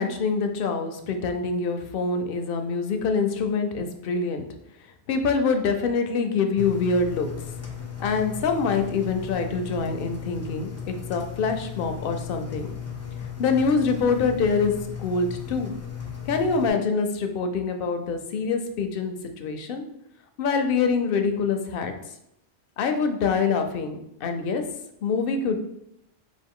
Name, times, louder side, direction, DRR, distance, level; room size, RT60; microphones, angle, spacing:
voice 1, 0.0-4.4 5.1-7.3 8.0-12.7 13.4-14.7 15.0-15.7 16.3-19.8 20.4-21.9 22.8-24.6 25.0-25.6, left 4 dB, 65° left, 6 dB, 0.7 m, -25 dB
Engine, 6.6-16.7, left 7 dB, 25° left, 0.4 m, -36 dB
4.5 x 2.5 x 3.5 m, 0.80 s
omnidirectional pair, 1.0 m